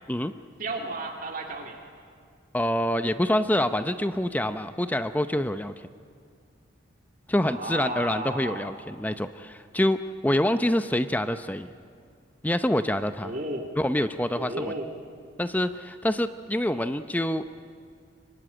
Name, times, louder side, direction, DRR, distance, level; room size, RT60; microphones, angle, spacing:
voice 1, 0.6-1.8 7.4-8.7 13.2-13.7 14.3-14.9, right 2 dB, 45° right, 2 dB, 2.8 m, -33 dB
voice 2, 2.5-5.9 7.3-10.0 10.2-11.7 12.4-13.3 13.8-14.7 15.4-17.4, left 1 dB, 10° left, 10 dB, 0.6 m, -26 dB
25.0 x 24.0 x 10.0 m, 2.2 s
head